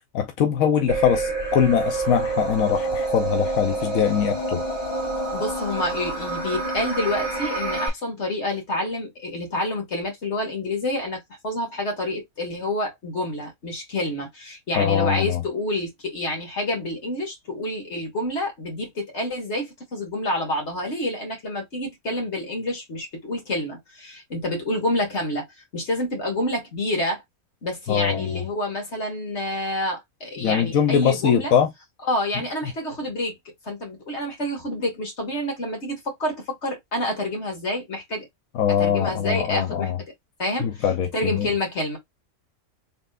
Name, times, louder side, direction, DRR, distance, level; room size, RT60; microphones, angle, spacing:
voice 1, 0.1-4.6 14.8-15.4 27.9-28.4 30.4-31.7 38.5-40.0 40.6-41.5, left 8 dB, 90° left, 1.2 m, -22 dB
sound 1, 0.9-7.9, right 2 dB, 20° right, 1.7 m, -27 dB
voice 2, 5.3-25.5 25.7-27.2 27.6-31.5 32.1-33.4 33.6-38.3 38.8-39.9 40.4-40.8 41.1-42.0, left 1 dB, 55° left, 2.2 m, -28 dB
4.4 x 3.4 x 2.5 m
omnidirectional pair, 1.4 m